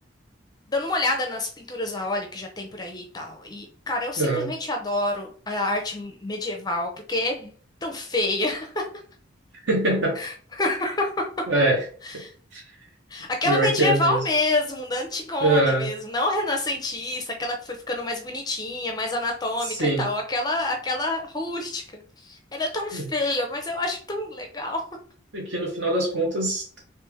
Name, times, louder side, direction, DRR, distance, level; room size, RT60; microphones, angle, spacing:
voice 1, 0.7-7.5 7.8-8.9 10.2-11.3 12.0-12.3 13.1-24.8, left 2 dB, 20° left, 3 dB, 0.5 m, -28 dB
voice 2, 4.2-4.5 9.6-10.2 11.5-11.8 12.5-12.6 13.4-14.2 15.4-15.9 19.7-20.0 22.9-23.1 25.3-26.8, right 1 dB, 60° right, 0 dB, 1.0 m, -23 dB
3.3 x 2.9 x 3.4 m, 0.43 s
head